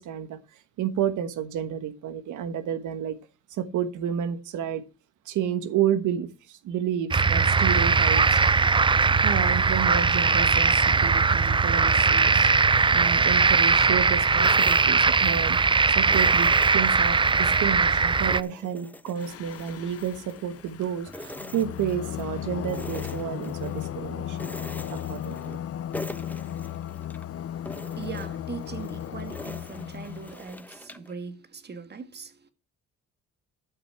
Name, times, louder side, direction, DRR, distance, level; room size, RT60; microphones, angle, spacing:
voice 1, 0.0-3.2 3.5-4.8 5.2-8.4 9.2-12.5 12.9-15.6 15.9-24.4 24.9-25.6, right 9 dB, 80° right, 1.3 m, -30 dB
sound 1, 7.1-18.4, right 4 dB, 15° right, 0.5 m, -20 dB
sound 2, 14.4-15.7 16.1-17.6 18.0-20.7 21.1-22.3 22.6-23.9 24.3-25.7 25.9-27.2 27.6-31.1, left 1 dB, 5° left, 1.1 m, -43 dB
Singing, 19.2-30.5, left 10 dB, 50° left, 0.7 m, -35 dB
voice 2, 27.3-32.5, right 5 dB, 35° right, 1.7 m, -40 dB
12.5 x 5.9 x 5.7 m
cardioid pair, 90°, 30 cm